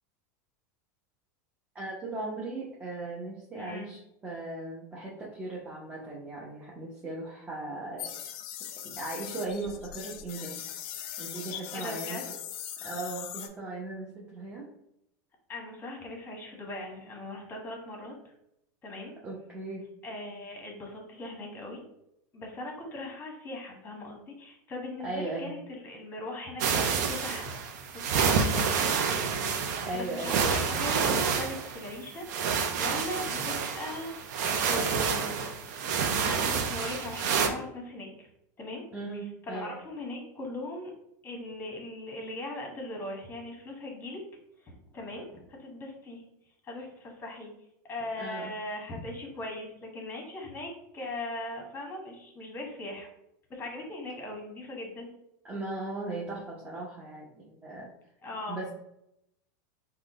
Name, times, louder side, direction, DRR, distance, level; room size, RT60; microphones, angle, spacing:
voice 1, 1.7-8.1 8.8-10.6 11.2-12.2 12.8-14.7 19.2-19.8 25.0-25.5 29.8-30.8 38.9-39.8 48.2-48.5 55.4-57.9 58.5-58.7, right 2 dB, 15° right, -5 dB, 0.8 m, -38 dB
voice 2, 3.5-3.9 11.7-12.3 15.5-18.1 18.8-19.1 20.0-21.8 22.3-27.5 27.9-28.9 29.9-34.3 34.6-35.4 36.2-38.3 38.6-38.8 39.1-40.9 41.2-44.2 44.6-46.2 46.6-47.5 47.8-53.1 53.5-55.1 58.2-58.6, left 1 dB, 20° left, 1 dB, 1.2 m, -39 dB
sound 1, 8.0-13.5, left 10 dB, 55° left, 0.4 m, -40 dB
sound 2, 26.6-37.5, right 6 dB, 70° right, 0.6 m, -28 dB
3.6 x 2.2 x 3.6 m, 0.78 s
supercardioid pair, 120°, 10 cm